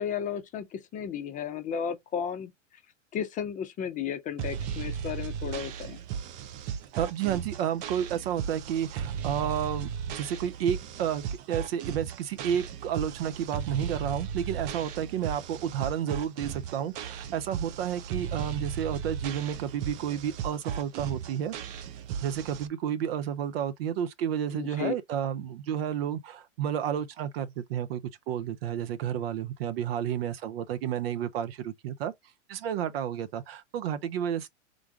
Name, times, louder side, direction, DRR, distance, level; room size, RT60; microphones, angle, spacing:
voice 1, 0.0-2.5 3.1-6.0 24.5-24.9, left 8 dB, 20° left, 0.7 m, -33 dB
sound 1, 4.4-22.7, right 8 dB, 25° right, 0.4 m, -36 dB
voice 2, 7.0-21.5 22.2-28.0 28.3-32.1 32.5-34.5, right 9 dB, 55° right, 0.7 m, -31 dB
3.8 x 2.4 x 4.6 m
hypercardioid pair, 105°, 37 cm